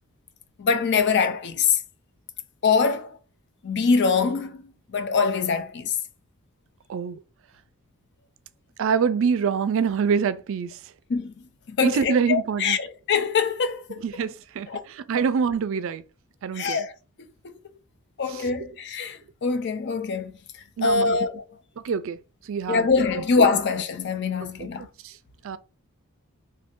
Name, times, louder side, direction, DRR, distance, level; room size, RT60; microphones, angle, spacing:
voice 1, 0.6-1.8 2.6-3.2 3.6-4.6 4.9-5.9 11.1-11.3 11.7-14.2 14.7-14.8 15.2-15.3 16.5-16.9 17.4-17.5 18.2-20.3 20.8-21.4 22.7-24.9, left 5 dB, 55° left, 0.5 m, -23 dB
voice 2, 6.9-7.2 8.8-10.8 11.8-12.8 14.0-16.0 16.4-16.8 18.3-18.5 20.8-21.2 21.8-22.2 22.4-22.9 25.0-25.2 25.4-25.6, right 6 dB, 65° right, 0.4 m, -25 dB
2.7 x 2.6 x 3.6 m
head